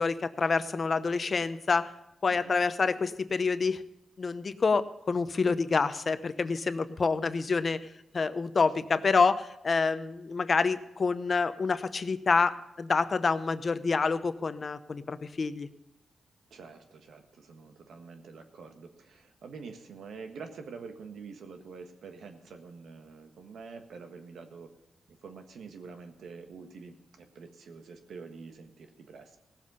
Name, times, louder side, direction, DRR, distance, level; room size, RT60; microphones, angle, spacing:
voice 1, 0.0-1.9 2.2-3.8 4.2-7.9 8.1-15.7, left 4 dB, 50° left, 12 dB, 0.7 m, -27 dB
voice 2, 2.3-2.6 16.5-24.7 25.1-29.4, right 5 dB, 85° right, 6 dB, 1.5 m, -46 dB
17.5 x 7.4 x 5.4 m, 0.90 s
cardioid pair, 70°, 0 cm